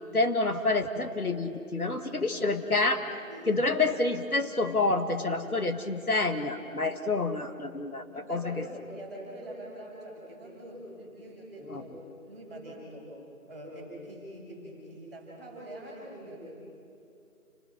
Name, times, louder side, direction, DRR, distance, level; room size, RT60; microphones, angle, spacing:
voice 1, 0.1-3.0 3.5-8.7 11.7-11.8, left 3 dB, 80° left, 6 dB, 2.1 m, -28 dB
voice 2, 3.2-3.7 8.1-11.9 12.2-13.1 13.5-16.5, right 1 dB, 10° right, -10 dB, 6.0 m, -44 dB
29.5 x 22.0 x 6.1 m, 2.5 s
figure-of-eight pair, 175°, 43 cm